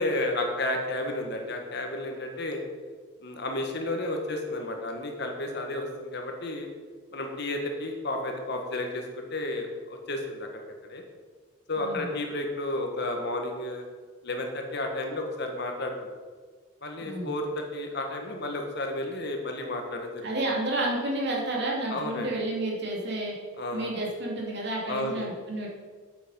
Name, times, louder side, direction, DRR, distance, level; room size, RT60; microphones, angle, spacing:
voice 1, 0.0-2.6 3.2-6.7 7.1-10.6 10.9-11.0 11.7-13.8 14.2-15.9 16.8-20.3 21.9-22.3 23.6-23.9 24.8-25.3, left 2 dB, 55° left, 3 dB, 1.5 m, -32 dB
voice 2, 11.8-12.1 17.0-17.3 20.2-23.3 23.7-25.7, right 1 dB, 55° right, -3 dB, 2.6 m, -30 dB
8.5 x 8.2 x 5.6 m, 1.5 s
head